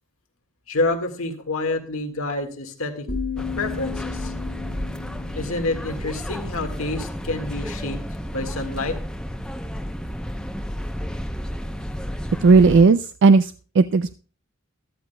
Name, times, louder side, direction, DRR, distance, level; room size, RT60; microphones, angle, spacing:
voice 1, 0.7-3.1 3.4-4.3 5.3-8.0 8.3-9.0, left 2 dB, 90° left, 4 dB, 1.8 m, -28 dB
sound 1, 3.1-7.0, left 6 dB, 50° left, 1.9 m, -34 dB
sound 2, 3.4-12.8, equal, 5° left, 0.7 m, -32 dB
voice 2, 12.4-14.1, right 4 dB, 60° right, 12 dB, 0.4 m, -15 dB
13.0 x 13.0 x 2.2 m, 0.38 s
head